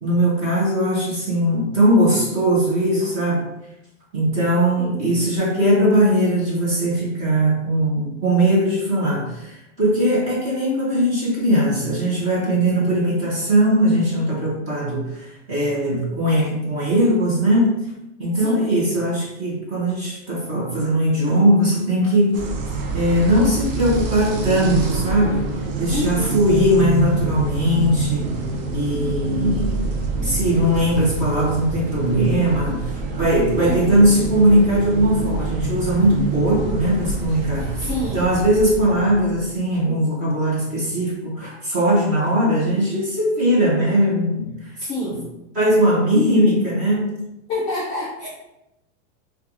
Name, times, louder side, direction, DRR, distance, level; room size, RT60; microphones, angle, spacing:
voice 1, 0.0-3.4 4.1-17.9 18.2-22.5 22.9-28.3 28.7-29.9 30.2-37.8 38.1-44.7 45.0-45.2 45.5-47.3, equal, 20° right, -6 dB, 0.8 m, -19 dB
voice 2, 4.8-5.3 12.7-12.9 18.3-18.7 25.9-26.4 33.6-34.1 37.8-38.3 44.8-45.2 47.5-48.3, left 2 dB, 10° left, -13 dB, 0.4 m, -28 dB
sound 1, 22.3-39.6, right 3 dB, 45° right, 0.5 m, -26 dB
4.4 x 2.3 x 2.5 m, 0.89 s
supercardioid pair, 180°, 38 cm